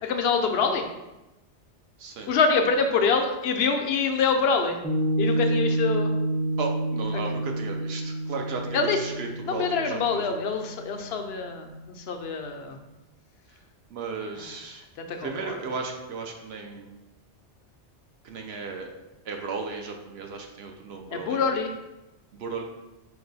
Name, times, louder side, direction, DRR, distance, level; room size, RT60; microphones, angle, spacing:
voice 1, 0.0-0.8 2.3-4.8 5.2-6.1 8.7-9.0 9.5-12.8 15.0-15.5 21.1-21.7, left 5 dB, 65° left, 5 dB, 0.8 m, -25 dB
voice 2, 2.0-2.3 6.6-10.3 13.9-14.8 15.2-17.0 18.2-18.9 19.2-21.6 22.3-22.6, right 4 dB, 70° right, 3 dB, 0.8 m, -35 dB
Piano, 4.8-11.5, right 1 dB, 20° left, 0.4 m, -29 dB
4.8 x 2.2 x 3.9 m, 0.98 s
omnidirectional pair, 1.2 m